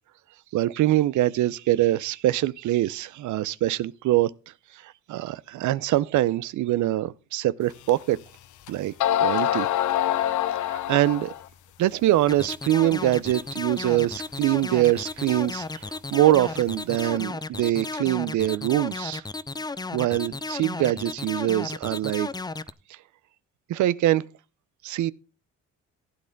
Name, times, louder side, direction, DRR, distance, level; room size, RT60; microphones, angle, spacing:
voice 1, 0.5-4.3 4.7-8.2 8.7-8.9 9.2-9.7 10.6-11.3 11.8-19.2 19.9-22.3 22.9-23.0 23.7-24.2 24.8-25.1, right 14 dB, 75° right, 0.6 m, -24 dB
sound 1, 7.9-8.0 8.7-8.8 9.0-11.5, left 12 dB, 75° left, 0.7 m, -25 dB
sound 2, 12.3-22.7, left 3 dB, 15° left, 0.5 m, -33 dB
15.5 x 8.5 x 3.8 m
cardioid pair, 90°, 30 cm